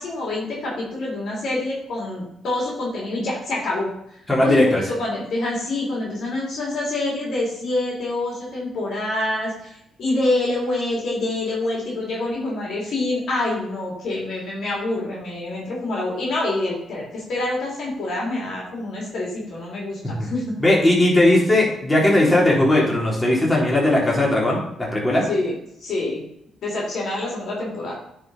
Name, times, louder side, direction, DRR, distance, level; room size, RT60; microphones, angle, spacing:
voice 1, 0.0-3.9 4.4-20.5 25.3-25.5 25.8-26.2 26.6-28.0, left 2 dB, 70° left, -4 dB, 3.4 m, -26 dB
voice 2, 4.3-4.8 20.6-25.2, left 1 dB, 20° left, -4 dB, 3.7 m, -18 dB
10.0 x 5.2 x 4.2 m, 0.77 s
supercardioid pair, 55°, 0 cm